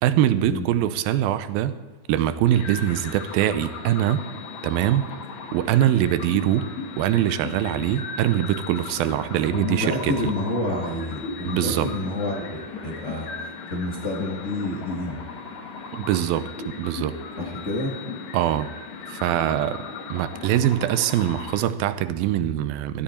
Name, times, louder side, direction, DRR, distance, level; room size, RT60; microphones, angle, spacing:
voice 1, 0.0-1.7 2.1-4.2 4.6-5.1 5.5-6.7 7.0-10.3 11.4-11.9 15.9-17.2 18.3-18.7 19.1-19.8 20.1-23.0, right 12 dB, 85° right, 13 dB, 2.5 m, -23 dB
sound 1, 2.5-21.6, left 4 dB, 60° left, 2.4 m, -37 dB
voice 2, 9.5-15.2 17.4-17.9, left 1 dB, 30° left, -2 dB, 1.3 m, -29 dB
17.0 x 13.0 x 4.4 m, 1.4 s
omnidirectional pair, 4.2 m